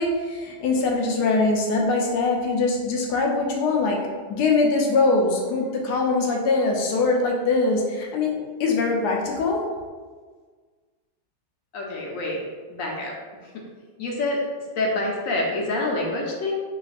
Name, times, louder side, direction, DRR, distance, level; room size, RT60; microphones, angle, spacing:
voice 1, 0.0-4.0 4.3-9.6, left 3 dB, 85° left, 0 dB, 1.2 m, -22 dB
voice 2, 11.7-12.4 12.7-13.1 13.5-13.6 14.0-14.4 14.8-16.5, left 2 dB, 65° left, -1 dB, 0.9 m, -26 dB
4.1 x 2.4 x 2.4 m, 1.5 s
omnidirectional pair, 1.7 m